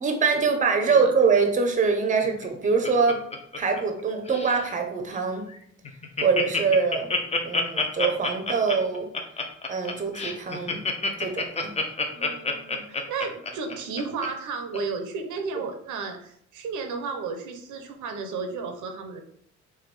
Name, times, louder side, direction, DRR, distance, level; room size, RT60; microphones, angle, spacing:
voice 1, 0.0-3.2 3.6-5.4 6.2-7.1 7.4-9.1 9.7-10.8 11.2-11.7, right 5 dB, 25° right, 4 dB, 0.6 m, -24 dB
voice 2, 0.8-1.1 11.9-19.2, right 4 dB, 80° right, 5 dB, 0.6 m, -33 dB
Laughter, 2.2-4.0 4.3-4.6 5.1-5.2 5.5-5.6 5.8-14.3 14.7-14.8, left 3 dB, 20° left, 0.5 m, -28 dB
3.4 x 2.2 x 3.2 m, 0.66 s
cardioid pair, 90°, 30 cm